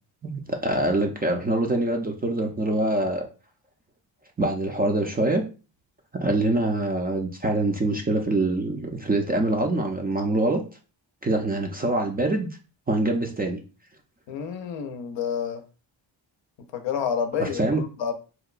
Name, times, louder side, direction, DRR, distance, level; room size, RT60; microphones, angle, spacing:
voice 1, 0.2-3.3 4.4-5.4 6.2-10.6 11.2-12.5 12.9-13.6 17.4-17.8, right 2 dB, 20° right, 2 dB, 0.4 m, -24 dB
voice 2, 14.3-15.6 16.7-17.6 18.0-18.1, left 7 dB, 70° left, 7 dB, 0.6 m, -28 dB
2.8 x 2.1 x 2.4 m, 0.34 s
cardioid pair, 100°, 46 cm